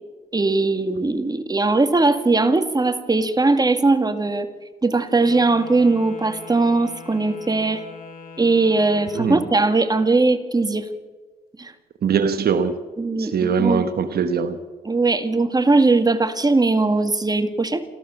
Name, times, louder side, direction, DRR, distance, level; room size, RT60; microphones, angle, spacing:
voice 1, 0.3-4.5 4.8-7.8 8.4-10.9 11.6-11.7 13.0-13.9 14.9-17.8, right 3 dB, 25° right, 9 dB, 2.1 m, -19 dB
Wind instrument woodwind instrument, 5.1-9.7, left 4 dB, 60° left, 4.6 m, -41 dB
voice 2, 12.0-12.8 13.2-14.6, right 6 dB, 70° right, 10 dB, 1.2 m, -21 dB
27.5 x 13.5 x 7.1 m, 1.3 s
cardioid pair, 65°, 17 cm